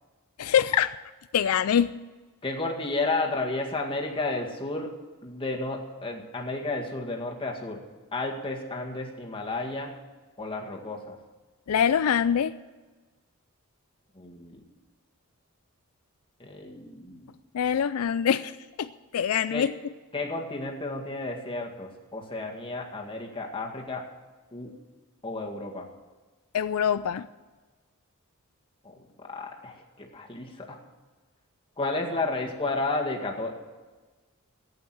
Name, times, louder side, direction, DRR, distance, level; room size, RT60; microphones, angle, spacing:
voice 1, 0.4-1.0 1.3-1.9 11.7-12.5 17.5-19.7 26.5-27.2, left 8 dB, 75° left, 13 dB, 0.4 m, -24 dB
voice 2, 2.4-4.9 5.2-7.8 8.1-9.9 10.4-11.2 14.1-14.7 16.4-17.4 19.5-19.7 20.1-24.0 24.5-24.7 25.2-25.9 28.8-30.8 31.8-33.6, left 2 dB, 25° left, 1 dB, 2.0 m, -32 dB
15.5 x 8.8 x 7.7 m, 1.3 s
head